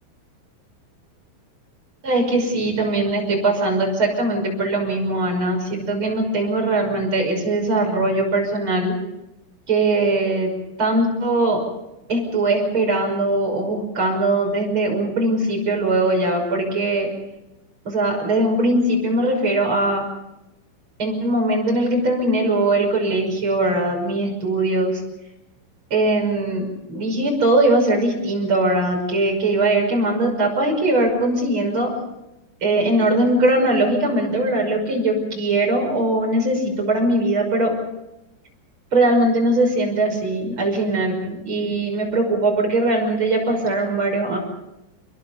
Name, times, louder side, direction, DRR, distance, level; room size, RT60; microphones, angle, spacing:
voice 1, 2.0-8.9 9.7-10.5 10.8-11.6 12.1-17.1 17.8-20.0 21.0-25.0 25.9-31.9 32.6-37.8 38.9-44.4, right 2 dB, 25° right, 1 dB, 6.3 m, -20 dB
26.5 x 22.5 x 5.4 m, 0.93 s
omnidirectional pair, 5.8 m